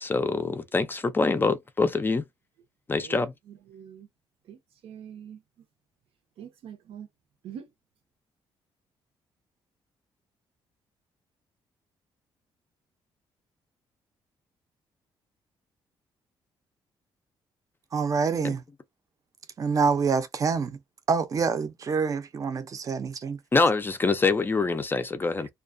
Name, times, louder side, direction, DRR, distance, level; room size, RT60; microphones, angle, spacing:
voice 1, 0.0-2.2 2.9-3.3 18.4-18.6 23.5-25.5, left 3 dB, 20° left, 0.4 m, -25 dB
voice 2, 3.5-4.1 4.5-5.4 6.4-7.1 7.4-7.7, right 8 dB, 80° right, 0.8 m, -44 dB
voice 3, 17.9-18.6 19.6-20.8 21.1-23.4, right 5 dB, 35° right, 0.5 m, -26 dB
2.3 x 2.2 x 2.5 m
cardioid pair, 115°, 10 cm